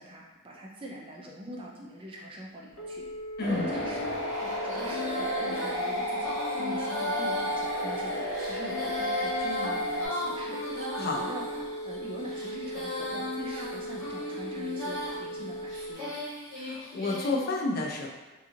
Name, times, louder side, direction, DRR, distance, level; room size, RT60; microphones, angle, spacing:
voice 1, 0.0-3.0 3.5-10.6 11.0-11.4 11.8-16.1, equal, 25° right, -2 dB, 0.4 m, -43 dB
Telephone, 2.8-15.9, equal, 85° left, 0.7 m, -38 dB
sound 1, 3.4-10.1, equal, 55° right, 1.0 m, -33 dB
Female singing, 3.7-17.3, left 1 dB, 20° left, 1.5 m, -37 dB
voice 2, 16.6-18.1, left 2 dB, 45° left, -1 dB, 0.4 m, -30 dB
2.9 x 2.6 x 2.4 m, 1.2 s
head